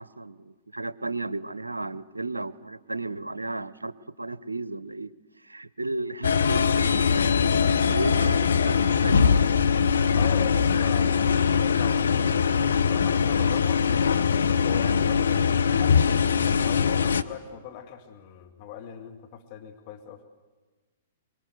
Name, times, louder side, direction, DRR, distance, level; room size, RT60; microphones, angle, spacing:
voice 1, 0.0-5.1 5.4-7.5 7.9-9.5, right 2 dB, 90° right, 18 dB, 0.7 m, -34 dB
sound 1, 6.2-17.2, left 6 dB, 70° left, 0.8 m, -22 dB
voice 2, 10.1-13.8 14.4-16.0 16.6-20.2, left 8 dB, 40° left, 4 dB, 2.2 m, -40 dB
24.0 x 22.0 x 8.0 m, 1.3 s
figure-of-eight pair, 110°, 0 cm